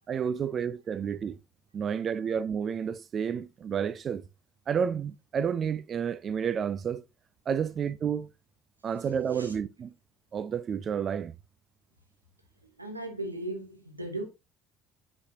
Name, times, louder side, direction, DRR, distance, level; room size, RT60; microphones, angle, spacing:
voice 1, 0.1-1.4 1.7-4.2 4.7-7.0 7.5-8.3 8.8-9.9 10.3-11.4, right 7 dB, 40° right, 0.4 m, -30 dB
voice 2, 12.6-14.3, right 1 dB, 90° right, 1.1 m, -37 dB
7.6 x 5.6 x 2.7 m
figure-of-eight pair, 55°, 0 cm